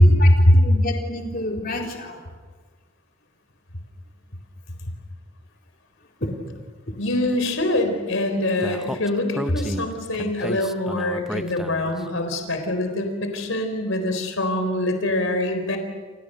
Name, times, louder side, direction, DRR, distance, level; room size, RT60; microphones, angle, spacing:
voice 1, 0.0-2.2 6.2-6.3 6.9-7.0, left 1 dB, 50° left, 0 dB, 4.1 m, -30 dB
voice 2, 7.0-15.8, left 1 dB, 80° left, 6 dB, 4.0 m, -22 dB
Speech, 8.6-12.0, equal, ahead, 0.8 m, -32 dB
29.0 x 28.5 x 6.7 m, 1.4 s
head